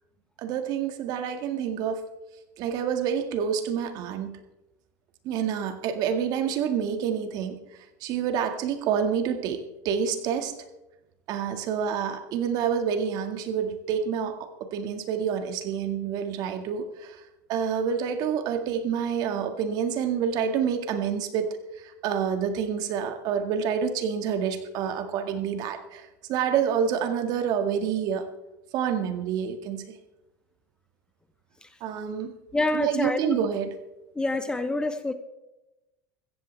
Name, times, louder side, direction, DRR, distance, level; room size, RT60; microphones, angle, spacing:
voice 1, 0.4-2.0 2.6-4.4 5.2-7.6 8.0-10.5 11.3-17.2 17.5-28.3 28.7-29.8 31.8-32.3 32.7-33.8, right 7 dB, 50° right, 7 dB, 1.9 m, -28 dB
voice 2, 32.5-33.4 34.1-35.1, left 2 dB, 10° left, 10 dB, 0.9 m, -27 dB
15.5 x 14.5 x 3.4 m, 0.97 s
supercardioid pair, 125°, 8 cm